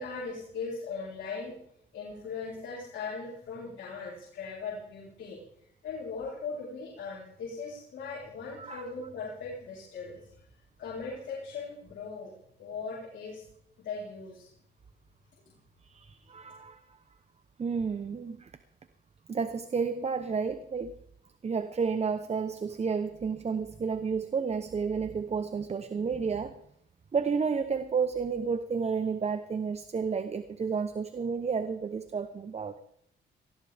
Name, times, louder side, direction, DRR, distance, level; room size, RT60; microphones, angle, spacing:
voice 1, 0.0-1.6 1.9-5.4 5.8-10.3 10.8-12.3 12.6-13.4 13.8-14.5, left 4 dB, 70° left, -6 dB, 4.2 m, -39 dB
voice 2, 15.8-16.8 17.6-18.5 19.3-20.9 21.4-26.5 27.1-32.8, right 5 dB, 35° right, 11 dB, 0.9 m, -31 dB
18.5 x 16.0 x 3.5 m, 0.74 s
cardioid pair, 90°, 20 cm